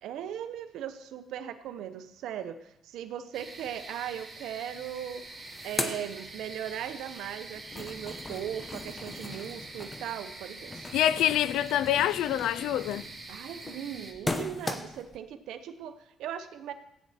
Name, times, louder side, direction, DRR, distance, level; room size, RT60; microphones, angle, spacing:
voice 1, 0.0-5.3 5.6-10.8 13.3-16.7, right 10 dB, 85° right, 0.9 m, -38 dB
sound 1, 3.3-14.1, right 2 dB, 20° right, 2.6 m, -45 dB
sound 2, 4.8-4.9 5.1-6.9 7.3-15.2, left 2 dB, 25° left, 1.0 m, -39 dB
voice 2, 10.9-13.0, left 12 dB, 85° left, 0.4 m, -26 dB
15.0 x 9.5 x 4.3 m
cardioid pair, 90°, 0 cm